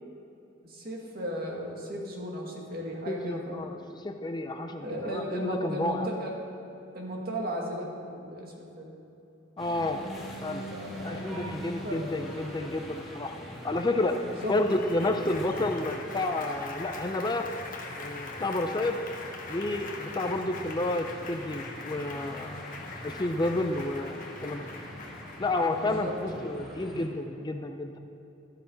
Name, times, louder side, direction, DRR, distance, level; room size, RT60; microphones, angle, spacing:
voice 1, 0.6-3.7 4.8-6.3 6.9-9.0 10.7-11.4 11.8-12.1 14.2-14.5 25.7-26.8, equal, 50° right, -1 dB, 2.1 m, -36 dB
voice 2, 3.1-6.1 9.6-10.0 10.4-10.6 11.0-13.3 13.6-14.2 14.5-17.5 18.0-19.0 19.5-24.7 25.4-28.0, left 2 dB, 20° left, 6 dB, 0.5 m, -30 dB
Applause, 9.6-26.6, left 2 dB, 45° left, 1.2 m, -43 dB
sound 1, 9.6-27.1, equal, ahead, 2.2 m, -45 dB
12.5 x 12.5 x 3.9 m, 2.8 s
head